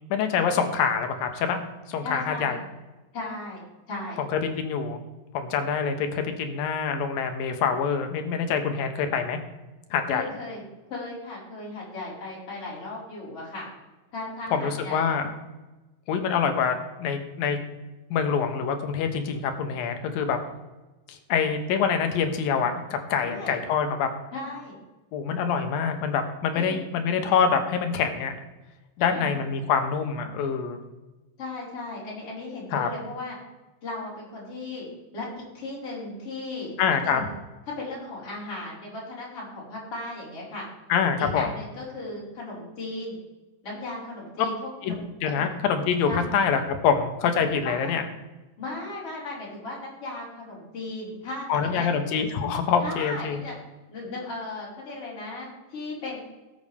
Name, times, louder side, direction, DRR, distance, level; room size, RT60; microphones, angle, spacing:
voice 1, 0.1-1.6 1.9-2.6 4.3-5.0 5.3-9.4 9.9-10.3 14.5-15.2 16.1-17.6 18.1-20.4 21.1-24.1 25.1-28.3 29.0-30.8 32.7-32.9 36.8-37.2 40.9-41.5 44.8-48.0 51.5-53.4, left 6 dB, 85° left, 6 dB, 2.9 m, -25 dB
voice 2, 2.0-2.6 3.1-3.6 3.9-4.2 10.1-10.6 10.9-13.7 14.1-15.1 23.2-23.5 24.3-24.8 26.5-26.8 29.0-29.3 31.4-33.4 33.8-34.9 35.1-36.7 37.0-37.3 37.8-40.6 41.2-43.2 43.6-44.5 44.8-45.3 46.1-46.2 47.6-48.0 48.6-51.9 52.8-53.6 53.9-56.2, left 2 dB, 40° left, -6 dB, 5.7 m, -36 dB
18.5 x 8.0 x 3.5 m, 1.1 s
omnidirectional pair, 4.0 m